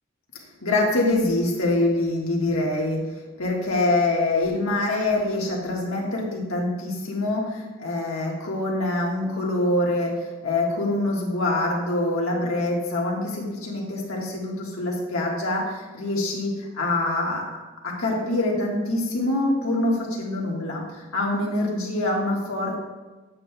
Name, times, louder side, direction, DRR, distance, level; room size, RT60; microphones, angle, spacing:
voice 1, 0.6-17.4 17.8-22.8, left 2 dB, 85° left, -2 dB, 1.5 m, -25 dB
8.5 x 7.2 x 2.3 m, 1.2 s
head